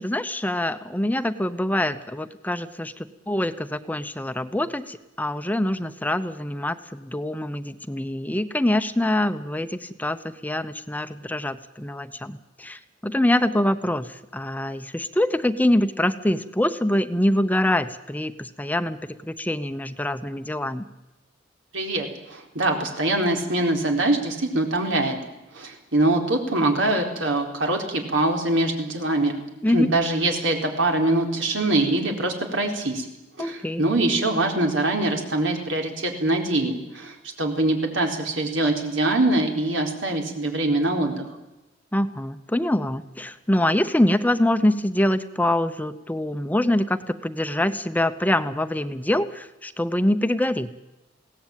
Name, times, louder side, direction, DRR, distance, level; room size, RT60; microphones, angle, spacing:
voice 1, 0.0-10.2 10.4-20.8 29.6-29.9 33.4-33.8 41.9-50.7, left 1 dB, 10° left, 11 dB, 0.7 m, -24 dB
voice 2, 21.7-25.2 25.5-29.3 29.7-33.1 33.4-41.3, right 2 dB, 85° right, 3 dB, 4.1 m, -23 dB
21.5 x 17.5 x 9.1 m, 0.99 s
head